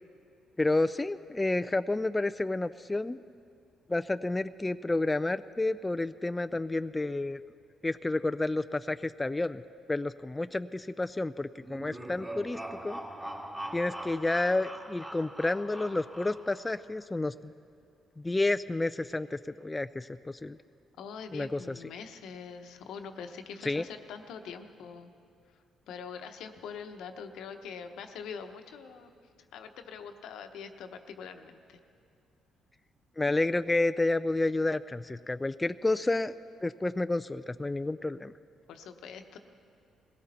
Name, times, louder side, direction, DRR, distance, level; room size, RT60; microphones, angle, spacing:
voice 1, 0.6-3.2 3.9-7.4 7.8-9.6 9.9-13.0 13.7-17.5 18.2-20.6 21.3-21.6 23.6-23.9 33.2-36.3 36.6-38.3, left 2 dB, 15° left, 11 dB, 0.3 m, -30 dB
sound 1, 11.6-16.7, right 1 dB, 15° right, 2.5 m, -42 dB
voice 2, 21.0-25.1 25.9-29.1 29.5-31.8 38.7-39.4, left 6 dB, 80° left, 6 dB, 1.0 m, -43 dB
20.0 x 17.0 x 4.3 m, 2.4 s
cardioid pair, 90°, 0 cm